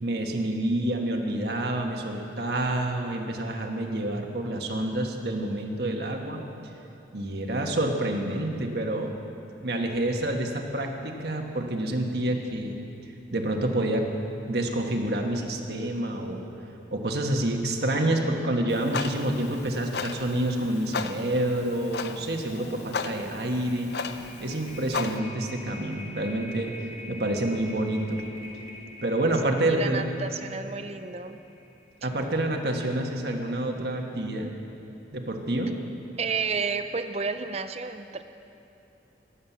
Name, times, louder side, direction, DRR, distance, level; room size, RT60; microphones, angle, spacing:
voice 1, 0.0-6.4 7.1-9.1 9.6-12.8 13.3-14.1 14.5-16.5 16.9-23.9 24.4-28.2 29.0-30.0 32.0-34.5 35.1-35.7, right 1 dB, 65° right, 2 dB, 1.3 m, -28 dB
Clock, 18.7-25.2, left 5 dB, 65° left, 0.6 m, -36 dB
sound 1, 22.4-32.7, left 1 dB, 35° left, 1.3 m, -46 dB
voice 2, 29.7-31.4 32.0-32.1 36.2-38.2, right 5 dB, 35° right, 9 dB, 0.5 m, -31 dB
18.0 x 7.4 x 7.3 m, 2.8 s
head